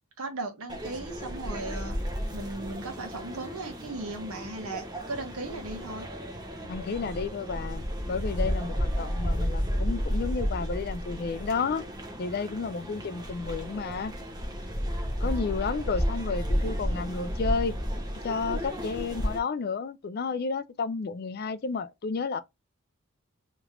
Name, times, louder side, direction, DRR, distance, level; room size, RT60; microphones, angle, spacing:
voice 1, 0.2-2.0 2.3-6.1, right 2 dB, 75° right, 1.2 m, -37 dB
sound 1, 0.7-19.4, equal, 20° right, 0.8 m, -32 dB
voice 2, 6.6-11.9 12.2-14.1 15.2-17.7 18.2-22.4, left 4 dB, 45° left, 0.4 m, -31 dB
3.3 x 3.0 x 3.6 m
head